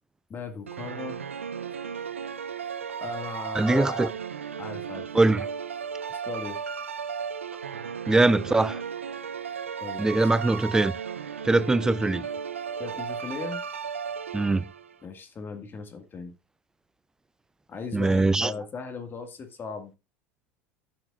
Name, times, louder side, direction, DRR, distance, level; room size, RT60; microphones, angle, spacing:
voice 1, 0.3-1.2 3.0-4.1 4.6-5.1 6.1-6.6 9.8-10.3 12.8-13.6 15.0-16.3 17.7-19.9, left 5 dB, 30° left, 2.0 m, -37 dB
sound 1, 0.7-15.0, right 7 dB, 85° right, 0.6 m, -35 dB
voice 2, 3.5-4.1 5.1-5.4 8.1-8.8 10.0-11.0 11.4-12.2 14.3-14.7 17.9-18.5, right 2 dB, 10° right, 0.4 m, -22 dB
12.0 x 9.0 x 2.5 m
figure-of-eight pair, 75°, 7 cm